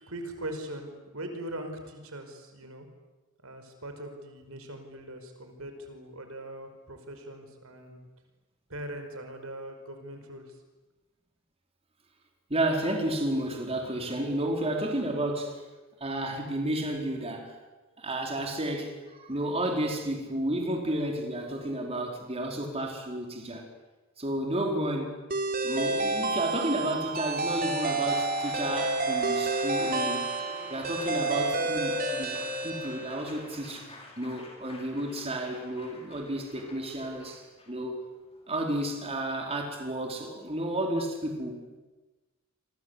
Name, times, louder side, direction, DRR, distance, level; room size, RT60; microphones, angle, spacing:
voice 1, 0.0-2.9 3.4-8.0 8.7-10.6, right 1 dB, 80° right, 6 dB, 5.2 m, -41 dB
voice 2, 12.5-15.6 16.0-17.6 18.0-23.7 24.2-25.2 25.6-30.2 30.7-32.4 32.6-38.0 38.5-41.8, right 1 dB, 30° right, 2 dB, 4.6 m, -32 dB
sound 1, 25.3-33.4, right 2 dB, 45° right, 3.7 m, -30 dB
Applause, 27.1-39.2, left 2 dB, 30° left, 6.3 m, -48 dB
28.5 x 24.5 x 8.3 m, 1.2 s
head